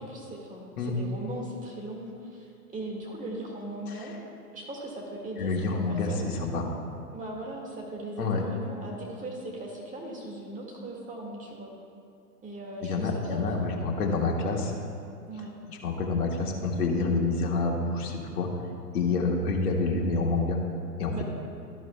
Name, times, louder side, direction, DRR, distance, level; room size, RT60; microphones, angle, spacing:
voice 1, 0.0-4.1 4.5-6.3 7.1-11.7 12.4-13.9 15.3-15.5 19.1-19.2 21.1-21.2, right 1 dB, 15° right, -1 dB, 1.9 m, -39 dB
voice 2, 5.4-6.7 8.2-8.4 12.8-14.7 15.7-18.5 18.9-20.6 21.0-21.2, left 3 dB, 70° left, 0 dB, 1.8 m, -28 dB
12.5 x 11.0 x 2.3 m, 2.3 s
hypercardioid pair, 115°, 46 cm